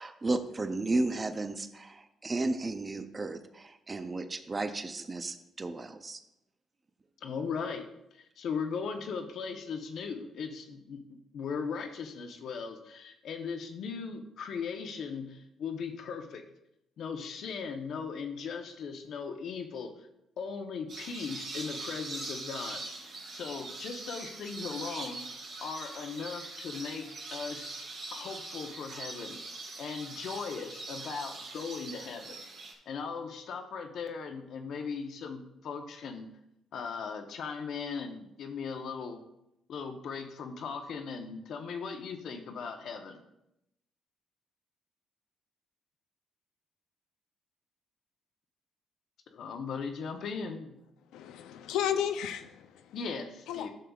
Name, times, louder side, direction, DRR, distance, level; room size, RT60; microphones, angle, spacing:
voice 1, 0.0-6.2, right 2 dB, 30° right, 9 dB, 0.6 m, -33 dB
voice 2, 7.2-16.4 17.0-20.1 20.4-22.8 23.3-25.3 25.6-27.8 28.1-29.4 29.8-32.4 32.9-36.3 36.7-39.2 39.7-43.2 49.3-50.8 52.9-53.7, left 5 dB, 70° left, 5 dB, 0.9 m, -38 dB
sound 1, 20.9-32.7, right 3 dB, 75° right, 2.8 m, -42 dB
voice 3, 51.1-52.9 53.5-53.7, left 9 dB, 90° left, 10 dB, 0.5 m, -33 dB
11.5 x 6.7 x 2.4 m, 0.85 s
cardioid pair, 90°, 0 cm